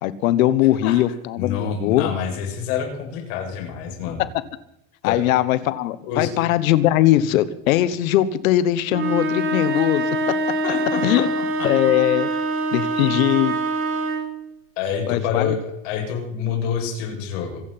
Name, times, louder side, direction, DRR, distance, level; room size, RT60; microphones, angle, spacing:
voice 1, 0.0-2.1 4.2-4.3 5.0-10.3 11.0-11.3 11.6-12.3 12.7-13.6 15.1-15.5, left 13 dB, 90° left, 16 dB, 1.4 m, -20 dB
voice 2, 1.4-4.2 5.0-5.2 6.0-6.3 10.6-11.9 14.8-17.6, left 7 dB, 65° left, 0 dB, 7.2 m, -27 dB
sound 1, 8.9-14.4, right 2 dB, 30° right, 3.2 m, -24 dB
25.5 x 8.9 x 5.8 m, 0.80 s
supercardioid pair, 145°, 40 cm